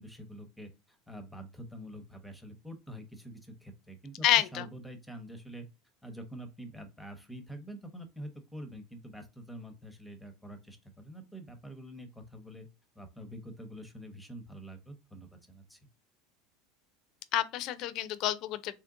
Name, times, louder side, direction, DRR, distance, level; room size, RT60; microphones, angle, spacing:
voice 1, 0.0-5.7 6.0-12.7 12.9-15.8, right 1 dB, 5° left, 0.8 m, -46 dB
voice 2, 4.2-4.7 17.3-18.7, left 13 dB, 50° left, 0.5 m, -28 dB
3.6 x 3.2 x 3.8 m
supercardioid pair, 130°, 0 cm